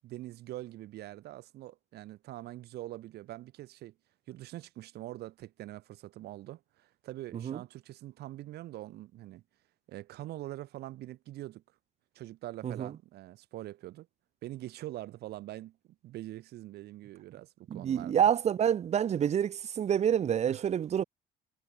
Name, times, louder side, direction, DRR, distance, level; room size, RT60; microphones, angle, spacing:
voice 1, 0.0-3.9 4.3-9.4 9.9-11.6 12.1-14.1 14.4-15.8 16.0-18.3 20.5-20.6, right 15 dB, 75° right, 2.3 m, -44 dB
voice 2, 17.7-21.0, right 9 dB, 40° right, 0.7 m, -28 dB
cardioid pair, 110°, 17 cm